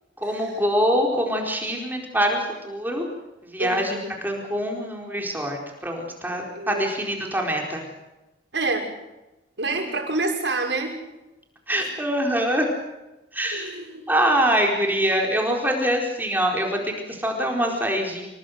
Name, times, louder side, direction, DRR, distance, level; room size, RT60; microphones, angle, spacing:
voice 1, 0.2-3.0 3.4-7.8 11.7-12.7 13.3-13.8 14.1-18.3, equal, 10° right, 1 dB, 4.3 m, -24 dB
voice 2, 3.6-4.1 6.5-6.8 8.5-8.9 9.6-11.0 13.5-14.0, right 3 dB, 90° right, 3 dB, 5.9 m, -27 dB
27.5 x 19.0 x 7.9 m, 1.0 s
head